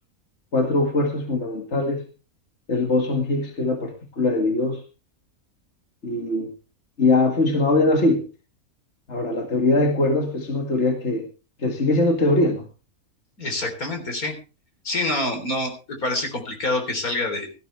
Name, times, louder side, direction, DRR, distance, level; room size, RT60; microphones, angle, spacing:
voice 1, 0.5-2.0 2.7-4.8 6.0-6.5 7.0-8.2 9.1-11.3 11.6-12.7, left 2 dB, 50° left, 4 dB, 2.4 m, -21 dB
voice 2, 13.4-14.4 14.8-15.7 16.0-17.5, left 2 dB, 75° left, 4 dB, 4.4 m, -26 dB
18.0 x 13.5 x 3.4 m, 0.32 s
omnidirectional pair, 1.5 m